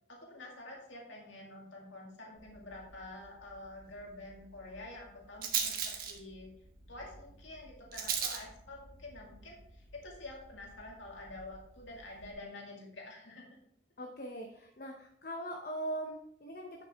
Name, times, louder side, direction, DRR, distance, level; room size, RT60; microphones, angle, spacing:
voice 1, 0.1-6.5 6.9-13.6, left 2 dB, 80° left, -1 dB, 2.2 m, -48 dB
Rattle, 2.4-12.3, right 7 dB, 45° right, 1.3 m, -42 dB
voice 2, 14.0-16.8, right 1 dB, 50° left, 2 dB, 0.8 m, -41 dB
10.5 x 5.9 x 3.5 m, 0.72 s
head